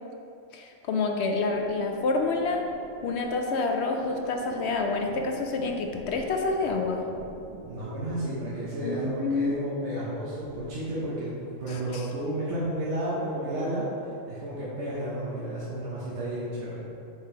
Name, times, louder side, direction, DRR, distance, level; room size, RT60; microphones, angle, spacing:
voice 1, 0.5-2.6 3.0-7.0 8.8-9.8 11.7-12.1, left 3 dB, 65° left, 3 dB, 0.8 m, -28 dB
sound 1, 1.4-10.7, right 1 dB, 45° right, 0.5 m, -46 dB
voice 2, 7.7-13.9 14.3-16.8, right 1 dB, 60° right, -8 dB, 1.2 m, -32 dB
5.2 x 4.6 x 4.4 m, 2.6 s
omnidirectional pair, 1.4 m